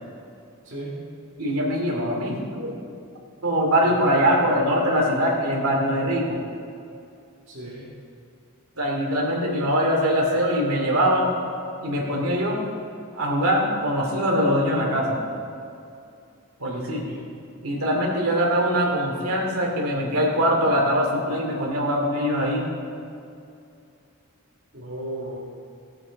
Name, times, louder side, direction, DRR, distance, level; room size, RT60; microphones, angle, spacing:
voice 1, 0.6-0.9 3.8-4.1 7.5-7.9 16.6-17.2 24.7-25.4, right 1 dB, 55° right, -9 dB, 2.4 m, -36 dB
voice 2, 1.4-2.7 3.4-6.4 8.8-11.3 11.8-12.6 13.1-15.2 16.6-17.0 17.6-22.7, equal, 80° right, -1 dB, 2.5 m, -22 dB
17.0 x 7.8 x 4.0 m, 2.5 s
head